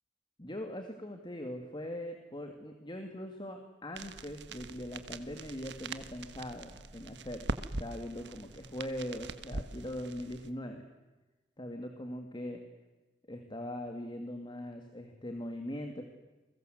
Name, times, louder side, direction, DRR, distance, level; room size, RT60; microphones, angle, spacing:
voice 1, 0.4-10.8 11.6-12.6 13.3-16.0, left 1 dB, 25° left, 5 dB, 2.4 m, -41 dB
sound 1, 4.0-10.5, right 2 dB, 70° right, 1.5 m, -42 dB
29.5 x 22.5 x 7.9 m, 1.2 s
head